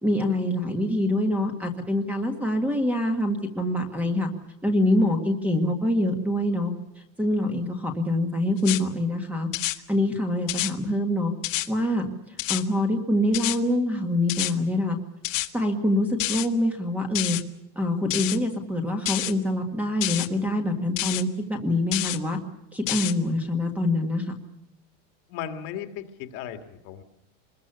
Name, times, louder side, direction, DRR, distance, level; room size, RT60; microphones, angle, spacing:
voice 1, 0.0-4.3 4.6-6.7 7.2-9.5 9.9-11.3 11.7-12.1 12.5-15.0 15.5-17.4 17.7-22.4 22.7-24.2, left 1 dB, 5° right, 4 dB, 1.7 m, -25 dB
sound 1, 8.6-8.8 9.5-9.8 10.5-10.7 11.4-11.7 12.4-12.6 13.3-13.6 14.3-14.5 15.2-15.5 16.2-16.5 17.2-17.4 18.1-18.4 19.1-19.3 20.0-20.3 21.0-21.2 21.9-22.2 22.9-23.1, left 17 dB, 75° left, 1.7 m, -28 dB
voice 2, 25.3-27.0, left 9 dB, 40° left, 7 dB, 2.0 m, -36 dB
26.0 x 21.5 x 6.9 m, 0.86 s
supercardioid pair, 175°, 39 cm